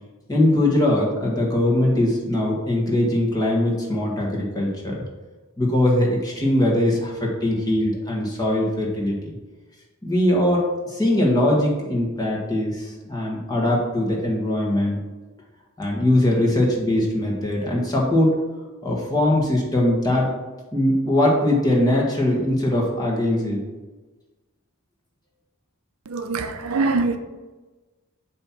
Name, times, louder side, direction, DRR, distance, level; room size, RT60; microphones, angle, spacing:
voice 1, 0.3-5.0 5.6-9.3 10.0-15.0 15.8-18.4 18.8-20.3 20.7-23.6, left 1 dB, 20° left, -3 dB, 1.5 m, -21 dB
voice 2, 26.1-27.2, right 3 dB, 70° right, 8 dB, 0.6 m, -23 dB
7.7 x 2.9 x 6.0 m, 1.2 s
head